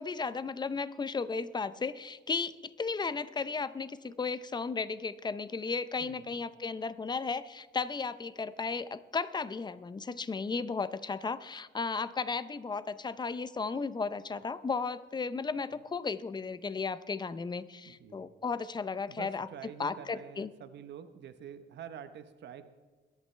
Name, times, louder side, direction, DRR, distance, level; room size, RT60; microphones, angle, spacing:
voice 1, 0.0-19.5 19.8-20.5, left 4 dB, 25° left, 15 dB, 0.6 m, -35 dB
voice 2, 6.0-6.4 15.7-15.8 17.8-18.3 19.1-22.7, right 8 dB, 70° right, 10 dB, 1.0 m, -47 dB
22.0 x 11.0 x 3.3 m, 1.4 s
cardioid pair, 100°, 19 cm